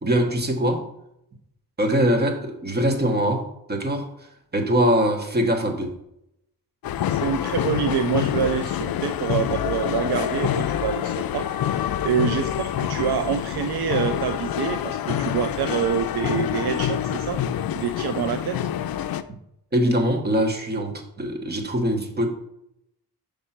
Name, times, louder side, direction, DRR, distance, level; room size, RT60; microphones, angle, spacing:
voice 1, 0.0-0.9 1.8-4.1 4.5-6.0 19.3-19.4 19.7-22.3, equal, 25° right, 4 dB, 1.1 m, -22 dB
sound 1, 6.8-19.2, left 10 dB, 65° left, 0.5 m, -26 dB
voice 2, 7.1-17.4 17.7-18.6, right 8 dB, 85° right, 8 dB, 0.5 m, -26 dB
5.3 x 4.4 x 5.8 m, 0.80 s
wide cardioid pair, 125°, 38 cm